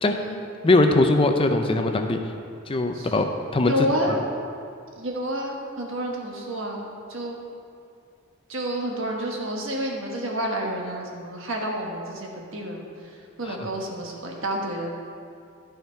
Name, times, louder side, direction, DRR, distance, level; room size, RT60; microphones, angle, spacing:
voice 1, 0.0-0.4 2.9-3.1 3.6-4.2 5.0-7.4 8.5-14.9, equal, 70° right, 0 dB, 1.4 m, -29 dB
voice 2, 0.6-2.2 2.7-3.2 3.5-3.7, left 2 dB, 25° left, 5 dB, 0.5 m, -20 dB
11.5 x 5.7 x 4.5 m, 2.4 s
head